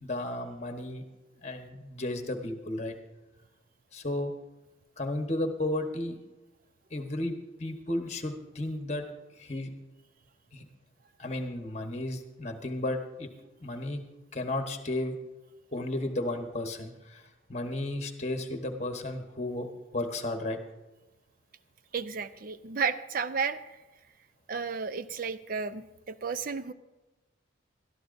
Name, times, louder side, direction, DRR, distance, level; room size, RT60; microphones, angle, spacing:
voice 1, 0.0-1.0 1.4-2.9 3.9-4.3 5.0-6.2 6.9-9.0 9.4-9.7 10.5-10.6 11.2-13.3 13.6-14.0 14.3-15.1 15.7-17.2 17.5-19.7 19.9-20.6, left 1 dB, 35° left, 5 dB, 1.2 m, -33 dB
voice 2, 21.9-23.8 24.5-26.7, right 5 dB, 45° right, 13 dB, 0.5 m, -33 dB
20.5 x 13.0 x 2.6 m, 1.1 s
head